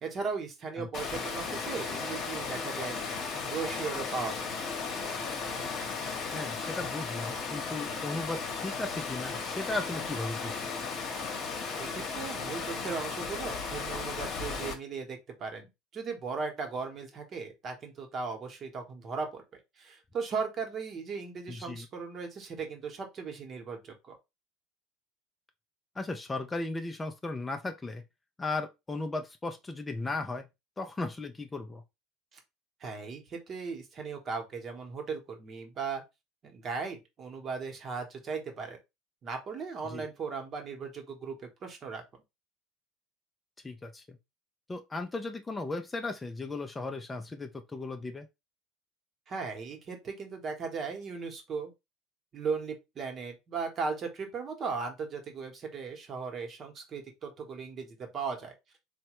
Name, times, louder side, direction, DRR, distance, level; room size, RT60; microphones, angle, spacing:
voice 1, 0.0-4.6 11.8-15.7 15.9-19.4 19.8-24.2 32.3-32.4 32.8-36.0 36.4-38.8 39.2-42.0 49.3-51.7 52.3-58.5, right 5 dB, 40° right, 1.0 m, -37 dB
Water, 0.9-14.7, left 5 dB, 50° left, 0.9 m, -35 dB
voice 2, 6.3-10.7 21.5-21.9 26.0-28.0 28.4-30.5 30.8-31.8 39.8-40.1 43.6-44.2 44.7-48.3, left 2 dB, 20° left, 0.4 m, -36 dB
3.1 x 2.2 x 3.0 m
supercardioid pair, 90°, 0 cm